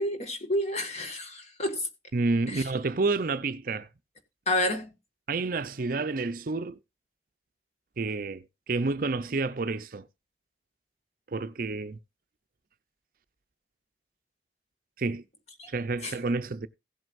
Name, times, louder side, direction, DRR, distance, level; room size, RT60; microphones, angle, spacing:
voice 1, 0.0-1.9 2.5-2.7 4.5-4.9 15.6-15.7 16.0-16.2, left 1 dB, 40° left, 1.8 m, -29 dB
voice 2, 2.1-3.9 5.3-6.8 8.0-10.0 11.3-12.0 15.0-15.2 15.7-16.7, right 3 dB, 50° right, 0.6 m, -29 dB
16.5 x 7.8 x 2.6 m
head